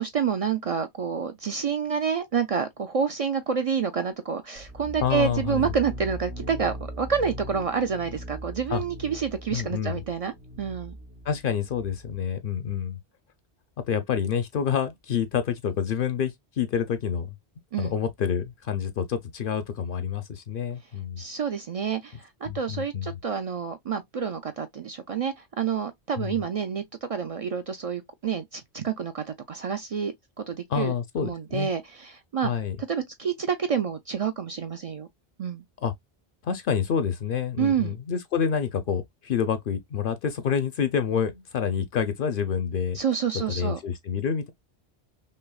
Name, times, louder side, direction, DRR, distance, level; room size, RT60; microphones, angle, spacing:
voice 1, 0.0-10.9 17.7-17.9 21.2-30.9 31.2-32.5 32.9-35.1 35.4-35.6 37.6-37.9 42.9-43.8, right 7 dB, 60° right, 0.3 m, -28 dB
sound 1, 4.5-12.2, equal, 80° right, 1.7 m, -40 dB
voice 2, 5.0-5.7 8.7-8.8 9.5-10.0 11.3-13.0 13.9-17.3 17.8-21.2 22.5-23.2 26.2-26.4 30.7-31.7 32.4-32.8 35.8-35.9 36.4-43.0 43.5-44.5, left 7 dB, 60° left, 0.7 m, -28 dB
5.4 x 2.0 x 2.3 m
omnidirectional pair, 1.1 m